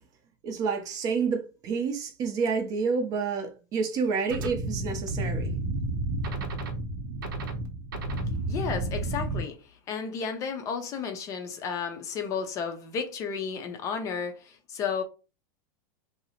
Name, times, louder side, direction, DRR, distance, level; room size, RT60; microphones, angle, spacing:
voice 1, 0.4-5.5, right 5 dB, 35° right, 0.5 m, -29 dB
sound 1, 4.3-9.4, right 2 dB, 85° right, 0.7 m, -31 dB
voice 2, 8.5-9.6 9.9-15.0, left 6 dB, 30° left, 0.4 m, -32 dB
2.7 x 2.0 x 2.8 m
supercardioid pair, 145°, 11 cm